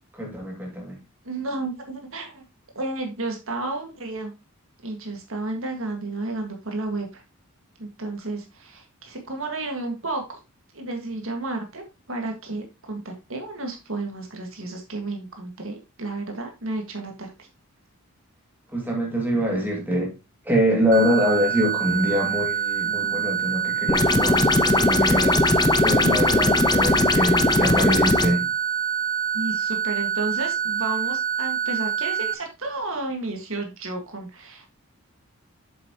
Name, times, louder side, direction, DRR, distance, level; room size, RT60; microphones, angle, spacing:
voice 1, 0.1-1.0 18.7-20.1 20.4-28.5, equal, 10° right, 2.4 m, -24 dB
voice 2, 1.2-2.4 2.8-4.3 4.8-7.2 7.8-10.4 10.7-17.5 29.3-34.7, right 2 dB, 65° right, 1.9 m, -32 dB
sound 1, 20.9-32.3, right 8 dB, 35° right, 0.7 m, -26 dB
sound 2, 23.9-28.3, left 2 dB, 20° left, 0.5 m, -19 dB
7.7 x 7.5 x 3.0 m
head